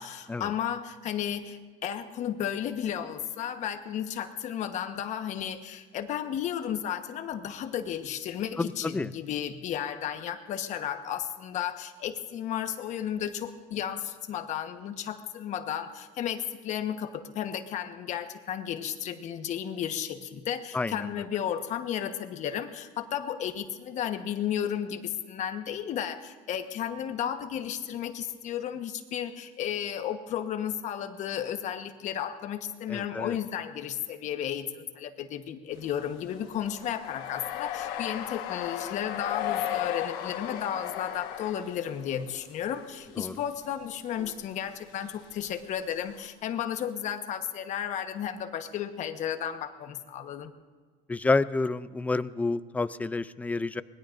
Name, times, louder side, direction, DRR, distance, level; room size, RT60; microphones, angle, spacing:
voice 1, 0.0-50.5, left 9 dB, 50° left, 7 dB, 1.2 m, -33 dB
voice 2, 8.6-9.1 20.7-21.1 32.9-33.4 43.2-43.3 51.1-53.8, left 3 dB, 10° left, 15 dB, 0.4 m, -29 dB
sound 1, 35.8-42.4 42.7-43.4 43.7-43.8 44.2-44.4 45.0-46.3, left 11 dB, 80° left, 1.4 m, -36 dB
25.5 x 20.5 x 2.6 m, 1.5 s
cardioid pair, 140°, 15 cm